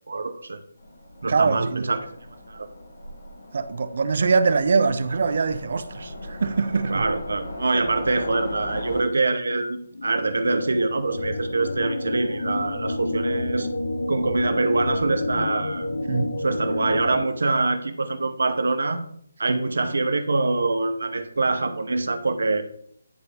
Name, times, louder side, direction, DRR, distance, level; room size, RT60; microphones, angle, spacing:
voice 1, 0.1-0.6 1.2-2.1 2.5-2.7 6.9-13.7 14.1-15.9 16.4-19.0 19.4-22.6, right 3 dB, 75° right, 0.7 m, -24 dB
Train, 0.8-9.0, left 1 dB, 50° left, 1.5 m, -38 dB
voice 2, 1.3-1.9 3.5-7.1 16.1-16.4 19.5-19.6, right 4 dB, 45° right, 0.4 m, -23 dB
sound 1, 9.9-17.3, left 2 dB, 70° left, 0.7 m, -29 dB
10.0 x 3.3 x 3.5 m
hypercardioid pair, 175°, 0 cm